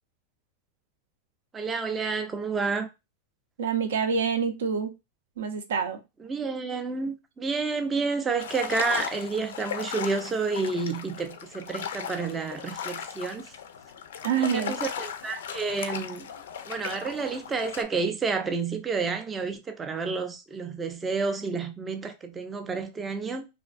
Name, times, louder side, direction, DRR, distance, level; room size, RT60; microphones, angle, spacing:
voice 1, 1.5-2.9 6.2-13.5 14.4-16.3 16.7-23.5, right 4 dB, 15° right, 0.3 m, -30 dB
voice 2, 3.6-4.9 5.4-6.0 14.2-14.7, right 6 dB, 85° right, 0.5 m, -26 dB
sound 1, 8.4-17.8, left 8 dB, 85° left, 0.3 m, -37 dB
2.5 x 2.1 x 2.4 m
supercardioid pair, 140°, 0 cm